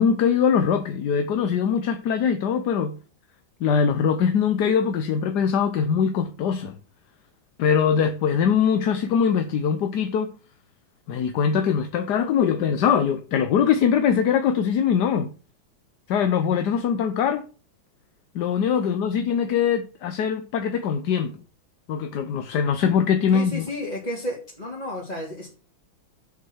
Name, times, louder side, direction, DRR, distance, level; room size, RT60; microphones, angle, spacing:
voice 1, 0.0-3.0 3.6-6.8 7.6-10.3 11.1-15.3 16.1-17.4 18.3-21.4 21.9-23.7, left 7 dB, 65° left, 1.3 m, -22 dB
voice 2, 23.3-25.5, left 1 dB, 20° left, 2.4 m, -32 dB
7.7 x 6.4 x 7.1 m
omnidirectional pair, 2.1 m